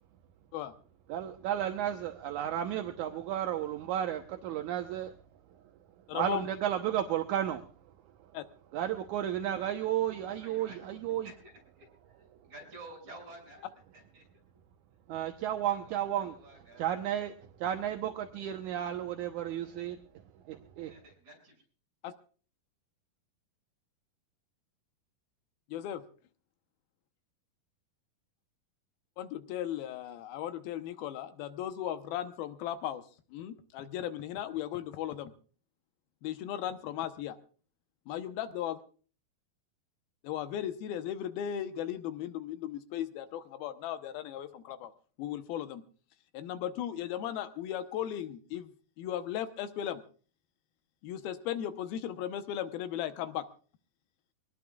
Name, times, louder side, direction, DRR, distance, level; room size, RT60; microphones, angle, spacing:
voice 1, 1.1-5.1 6.1-7.6 8.7-11.3 15.1-16.3 16.8-17.3 17.6-20.0 20.5-20.9, right 11 dB, 70° right, 5 dB, 2.0 m, -33 dB
voice 2, 6.1-6.5 8.3-8.4 22.0-22.1 25.7-26.0 29.2-33.0 33.3-35.3 36.2-37.4 38.1-38.8 40.2-44.9 45.2-45.8 46.3-48.7 49.0-50.0 51.0-53.5, left 11 dB, 80° left, 9 dB, 2.8 m, -36 dB
voice 3, 10.2-11.9 12.4-13.7 13.9-14.3 15.7-16.9 20.9-21.6, right 2 dB, 50° right, 0 dB, 8.2 m, -51 dB
24.5 x 19.0 x 2.4 m, 0.40 s
omnidirectional pair, 4.3 m